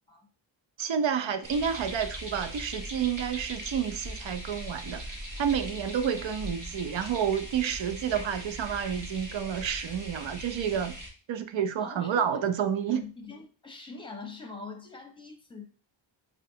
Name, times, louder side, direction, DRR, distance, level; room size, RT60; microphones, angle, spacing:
voice 1, 0.8-5.0 5.4-11.0 11.3-13.0, right 8 dB, 70° right, 0.5 m, -29 dB
sound 1, 1.4-11.1, equal, 40° right, 1.1 m, -40 dB
voice 2, 11.8-12.3 12.9-15.7, left 4 dB, 10° left, 0.7 m, -43 dB
5.0 x 2.2 x 2.7 m
wide cardioid pair, 95°, 48 cm